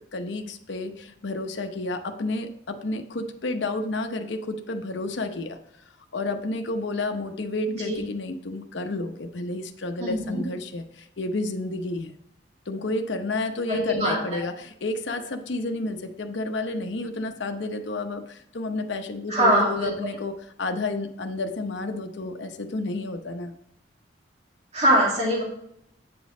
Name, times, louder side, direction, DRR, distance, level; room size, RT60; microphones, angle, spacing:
voice 1, 0.1-5.6 6.1-12.1 12.7-23.5, left 2 dB, 75° left, 6 dB, 0.7 m, -31 dB
voice 2, 10.0-10.4 13.7-14.4 19.3-19.9 24.7-25.4, equal, 35° right, -4 dB, 2.2 m, -22 dB
8.7 x 5.2 x 3.7 m, 0.73 s
head